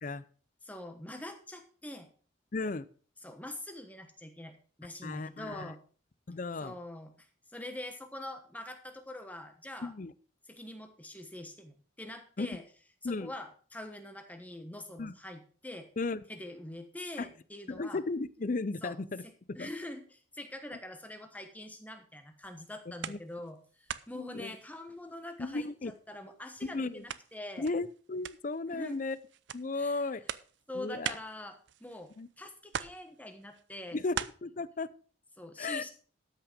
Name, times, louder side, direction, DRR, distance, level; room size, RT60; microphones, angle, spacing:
voice 1, 0.6-2.1 3.2-5.8 6.6-7.3 7.5-9.9 10.5-12.6 13.0-15.9 16.3-18.0 18.8-19.0 19.2-27.7 28.7-29.0 29.8-30.0 30.7-34.0 35.4-35.9, left 1 dB, 10° left, 6 dB, 1.2 m, -44 dB
voice 2, 2.5-2.9 5.0-5.7 6.3-6.8 9.8-10.1 12.4-12.5 13.0-13.3 15.0-15.1 16.0-16.2 17.2-17.3 17.7-19.2 19.6-19.7 23.1-23.2 24.3-24.5 25.4-25.9 26.7-27.1 27.6-29.2 29.5-30.2 30.7-31.2 32.2-32.3 33.9-34.9 35.6-35.8, left 3 dB, 40° left, 16 dB, 0.5 m, -35 dB
sound 1, 22.4-23.6 23.9-25.4 25.8-32.3 32.7-34.3, right 8 dB, 65° right, 0.5 m, -42 dB
13.0 x 6.1 x 5.1 m, 0.41 s
head